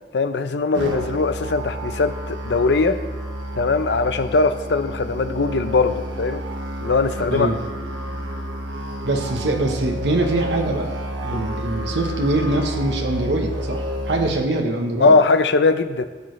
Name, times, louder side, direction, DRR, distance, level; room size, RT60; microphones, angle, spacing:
voice 1, 0.1-3.0 3.5-6.4 6.8-7.5 11.3-11.5 15.0-16.1, left 3 dB, 65° left, 10 dB, 0.5 m, -20 dB
Musical instrument, 0.7-14.3, equal, 90° right, 1.4 m, -30 dB
voice 2, 9.0-10.9 11.2-15.1, right 2 dB, 70° right, 2 dB, 1.0 m, -23 dB
14.5 x 6.4 x 3.2 m, 1.4 s
head